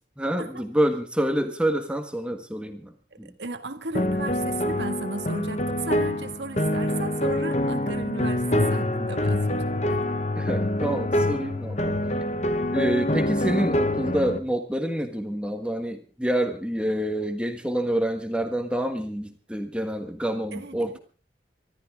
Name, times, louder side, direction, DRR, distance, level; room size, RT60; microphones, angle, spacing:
voice 1, 0.2-2.9 3.2-3.3 10.4-12.0 12.7-21.0, right 1 dB, 5° right, 1.5 m, -27 dB
voice 2, 3.1-10.0 20.5-21.0, right 3 dB, 80° right, 1.8 m, -35 dB
sound 1, 3.9-14.4, left 1 dB, 40° left, 1.2 m, -25 dB
24.5 x 13.5 x 3.7 m
head